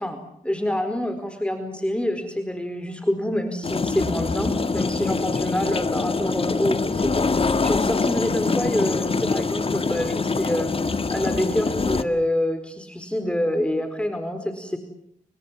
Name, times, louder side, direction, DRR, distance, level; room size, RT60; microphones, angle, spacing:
voice 1, 0.0-10.7 11.1-14.8, left 1 dB, 10° left, 8 dB, 4.5 m, -26 dB
sound 1, 3.6-12.0, left 4 dB, 40° left, 2.0 m, -24 dB
29.0 x 24.5 x 7.4 m, 0.68 s
cardioid pair, 60°, 14 cm